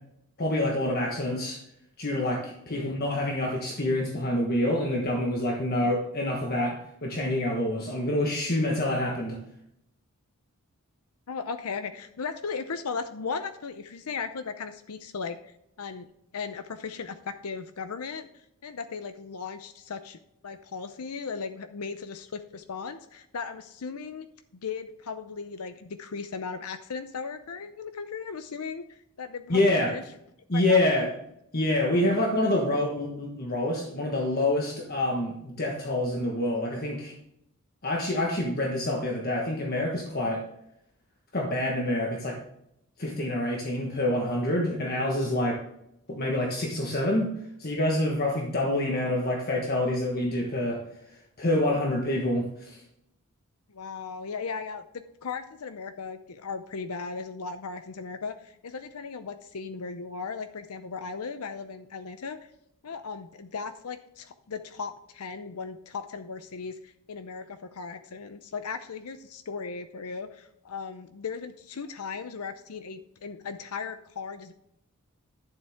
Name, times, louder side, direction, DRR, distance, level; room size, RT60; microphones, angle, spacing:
voice 1, 0.4-1.6 2.0-9.4 29.5-29.9 30.5-31.1 31.5-37.1 37.8-40.4 41.3-42.4 43.0-45.6 46.1-47.3 47.6-50.8 51.4-52.8, left 1 dB, 45° left, -1 dB, 1.4 m, -27 dB
voice 2, 2.7-3.0 5.8-6.0 11.3-20.2 20.4-24.3 24.5-30.0 30.5-31.1 32.0-32.2 48.9-49.2 53.7-62.4 62.8-74.5, left 5 dB, 90° left, 9 dB, 0.7 m, -37 dB
11.5 x 7.4 x 3.6 m, 0.78 s
head